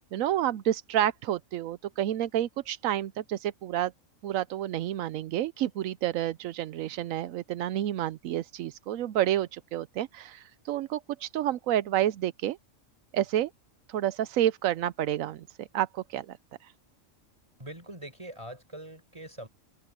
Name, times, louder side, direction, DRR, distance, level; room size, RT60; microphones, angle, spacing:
voice 1, 0.0-3.9 4.2-12.6 13.1-13.5 13.9-16.4 16.6-16.7, right 12 dB, 85° right, 1.0 m, -29 dB
voice 2, 17.6-19.5, right 1 dB, 25° right, 5.0 m, -43 dB
open air
omnidirectional pair, 1.3 m